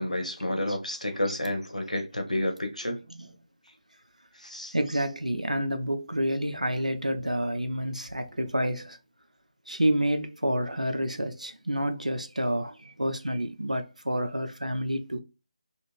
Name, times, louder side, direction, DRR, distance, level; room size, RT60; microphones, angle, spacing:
voice 1, 0.0-3.0 4.4-4.7, left 1 dB, 85° left, 0.9 m, -30 dB
voice 2, 4.7-9.0 9.7-15.2, equal, 85° right, 0.5 m, -29 dB
2.5 x 2.4 x 3.2 m
figure-of-eight pair, 155°, 4 cm